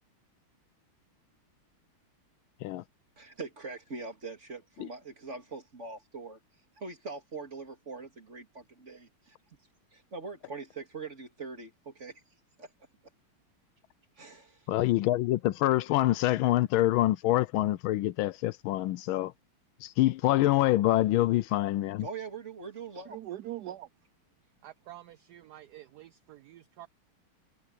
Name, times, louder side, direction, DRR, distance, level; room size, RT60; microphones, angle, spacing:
voice 1, 3.2-6.4 6.8-9.4 9.9-12.2 12.6-12.7 14.2-14.6 22.0-23.2, right 4 dB, 35° right, 3.0 m, -42 dB
voice 2, 14.7-19.3 19.8-22.1, left 15 dB, 80° left, 1.4 m, -26 dB
voice 3, 23.1-23.9 24.6-26.9, right 13 dB, 75° right, 0.9 m, -44 dB
omnidirectional pair, 2.3 m